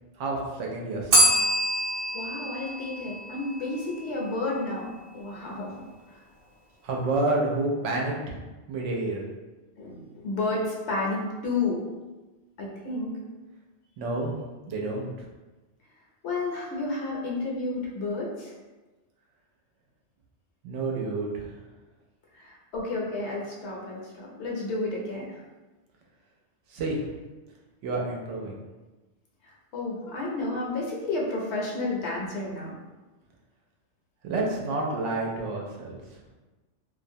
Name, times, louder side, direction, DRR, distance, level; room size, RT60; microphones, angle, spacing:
voice 1, 0.2-1.2 6.8-8.4 8.7-9.2 14.0-14.3 14.7-15.1 20.6-21.5 26.7-27.1 27.8-28.6 34.2-36.0, right 2 dB, 90° right, -1 dB, 0.9 m, -29 dB
Bell, 1.1-3.9, right 1 dB, 60° right, 0.9 m, -25 dB
voice 2, 2.1-5.7 6.1-6.2 9.8-11.8 12.6-13.1 16.2-18.5 22.3-25.4 29.4-32.8, left 2 dB, 70° left, -3 dB, 0.9 m, -31 dB
2.4 x 2.0 x 2.6 m, 1.2 s
omnidirectional pair, 1.2 m